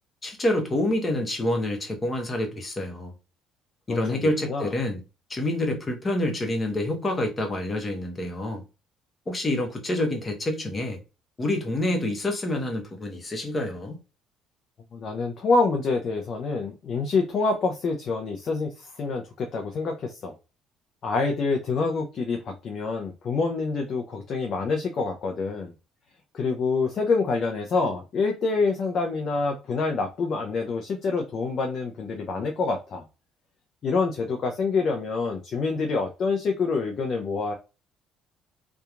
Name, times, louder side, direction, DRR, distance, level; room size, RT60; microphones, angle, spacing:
voice 1, 0.2-3.1 3.9-5.0 5.3-8.6 9.3-11.0 11.4-14.0, left 1 dB, 30° left, 0.9 m, -27 dB
voice 2, 3.9-4.7 14.9-20.3 21.0-25.7 26.3-33.0 33.8-37.5, left 4 dB, 55° left, 0.5 m, -26 dB
2.8 x 2.3 x 2.4 m
supercardioid pair, 75°, 0 cm